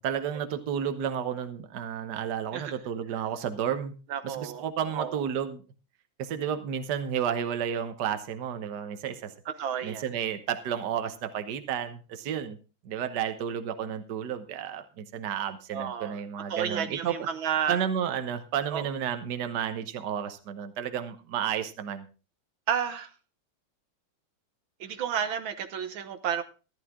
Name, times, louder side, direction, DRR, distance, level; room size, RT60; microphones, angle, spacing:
voice 1, 0.0-3.9 4.2-5.6 6.2-9.3 9.8-12.6 12.8-17.2 17.7-22.1, right 8 dB, 60° right, 8 dB, 1.6 m, -32 dB
voice 2, 4.1-4.6 4.9-5.2 9.6-10.1 15.7-16.2 16.5-17.8 18.7-18.9 22.7-23.1 24.8-26.4, right 8 dB, 80° right, 9 dB, 1.8 m, -31 dB
14.0 x 11.5 x 3.7 m, 0.34 s
omnidirectional pair, 2.2 m